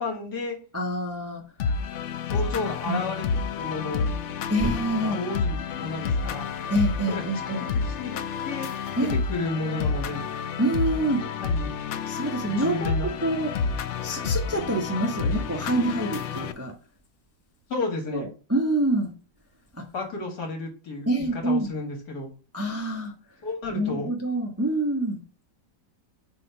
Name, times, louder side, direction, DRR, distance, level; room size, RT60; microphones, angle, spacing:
voice 1, 0.0-0.6 2.3-4.1 5.0-6.5 7.1-7.2 7.7-8.2 8.4-8.7 9.1-10.2 11.4-11.8 12.4-13.1 17.7-18.3 19.9-22.3 23.4-24.1, left 3 dB, 65° left, 2 dB, 2.3 m, -32 dB
voice 2, 0.7-1.4 2.9-3.0 4.5-5.2 6.7-7.7 9.0-9.2 10.6-11.2 12.1-13.5 14.0-16.7 18.1-19.1 19.7-19.8 21.1-21.7 22.5-23.1 23.7-25.2, right 1 dB, 10° right, 1 dB, 0.8 m, -26 dB
sound 1, 1.6-16.5, left 5 dB, 90° left, 0.6 m, -29 dB
4.7 x 4.4 x 5.6 m, 0.35 s
omnidirectional pair, 1.9 m